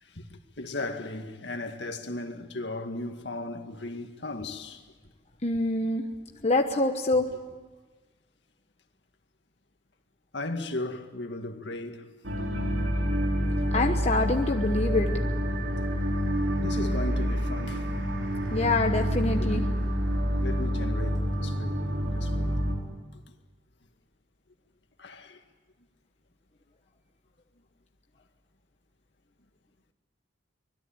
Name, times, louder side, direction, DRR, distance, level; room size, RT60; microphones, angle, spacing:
voice 1, 0.0-4.8 10.3-12.1 16.6-17.9 19.4-19.5 20.4-21.8 22.1-22.6 25.0-25.4, left 2 dB, 65° left, 2.0 m, -36 dB
voice 2, 5.4-6.0 6.4-7.3 13.7-15.1 18.5-19.6, left 2 dB, 35° left, 1.1 m, -25 dB
sound 1, 12.2-22.8, equal, 80° right, 4.2 m, -27 dB
25.0 x 21.0 x 9.0 m
head